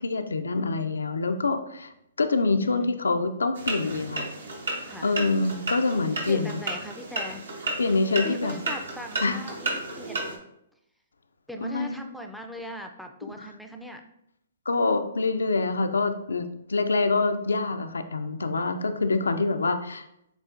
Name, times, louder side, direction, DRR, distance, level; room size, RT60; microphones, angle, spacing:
voice 1, 0.0-1.9 2.2-4.3 5.0-6.5 7.8-8.6 9.2-9.4 11.6-11.9 14.7-20.0, left 3 dB, 85° left, 8 dB, 0.4 m, -25 dB
voice 2, 2.6-3.3 4.8-5.2 6.3-7.4 8.1-10.4 11.5-14.0, equal, ahead, 3 dB, 0.4 m, -40 dB
sound 1, 3.5-10.4, right 2 dB, 70° right, 1.0 m, -33 dB
6.8 x 2.4 x 2.5 m, 0.79 s
hypercardioid pair, 125°, 0 cm